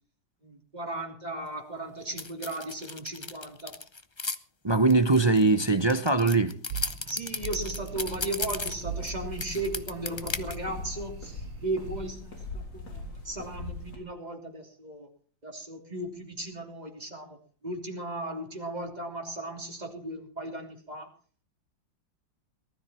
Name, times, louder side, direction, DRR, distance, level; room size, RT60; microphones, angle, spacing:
voice 1, 0.4-3.8 7.1-15.1 15.4-21.1, right 2 dB, 20° right, 3.2 m, -36 dB
sound 1, 2.2-4.4 4.9-9.1 9.4-10.6, left 4 dB, 40° left, 0.4 m, -35 dB
voice 2, 4.6-6.6, right 3 dB, 45° right, 0.3 m, -22 dB
sound 2, 6.7-12.1, right 8 dB, 85° right, 1.6 m, -41 dB
sound 3, 7.6-14.0, left 2 dB, 80° left, 4.3 m, -41 dB
19.5 x 13.0 x 4.4 m
omnidirectional pair, 2.0 m